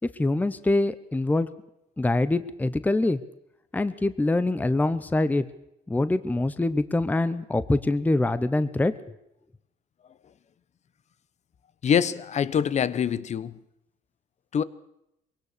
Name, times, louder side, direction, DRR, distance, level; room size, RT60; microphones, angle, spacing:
voice 1, 0.2-1.5 2.0-3.2 3.7-5.4 5.9-8.9, left 2 dB, 10° left, 0.8 m, -24 dB
voice 2, 11.8-13.6 14.5-14.6, left 8 dB, 40° left, 1.0 m, -24 dB
22.5 x 18.0 x 6.7 m
cardioid pair, 110°, 17 cm